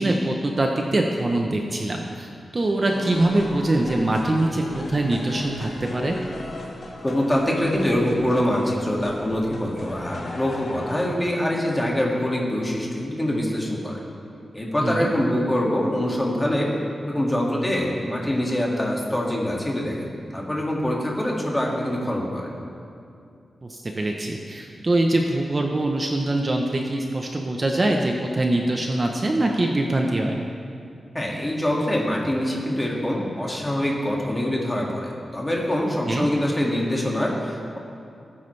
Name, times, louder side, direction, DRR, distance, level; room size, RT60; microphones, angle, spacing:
voice 1, 0.0-6.2 14.8-15.1 23.6-30.4 36.1-36.3, right 1 dB, 30° right, 2 dB, 0.8 m, -23 dB
sound 1, 2.9-11.1, left 1 dB, 55° left, 1.8 m, -37 dB
voice 2, 7.0-14.1 14.5-16.7 17.0-22.5 31.1-37.8, left 1 dB, 15° left, -3 dB, 2.1 m, -24 dB
18.5 x 9.7 x 3.3 m, 2.5 s
wide cardioid pair, 115°, 0 cm